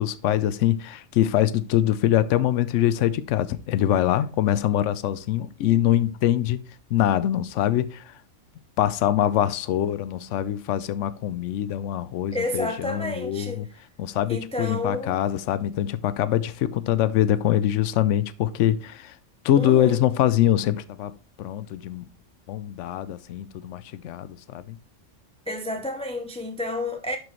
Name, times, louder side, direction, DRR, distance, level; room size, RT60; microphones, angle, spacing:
voice 1, 0.0-6.6 6.9-8.2 8.8-13.7 14.0-19.2 19.4-21.1 21.4-22.0 22.5-24.8, left 12 dB, 80° left, 0.9 m, -24 dB
voice 2, 12.3-13.7 14.3-15.2 19.6-20.0 25.5-27.2, left 1 dB, 5° left, 0.5 m, -30 dB
11.5 x 4.6 x 3.1 m
omnidirectional pair, 1.2 m